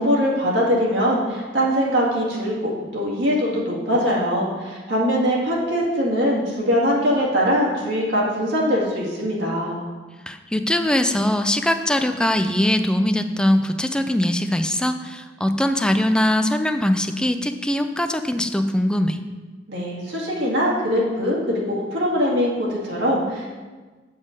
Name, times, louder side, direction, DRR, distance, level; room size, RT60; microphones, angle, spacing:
voice 1, 0.0-9.8 19.7-23.6, equal, 85° right, -5 dB, 2.1 m, -22 dB
voice 2, 10.3-19.2, left 1 dB, 5° left, 8 dB, 0.4 m, -21 dB
7.9 x 5.4 x 5.2 m, 1.3 s
head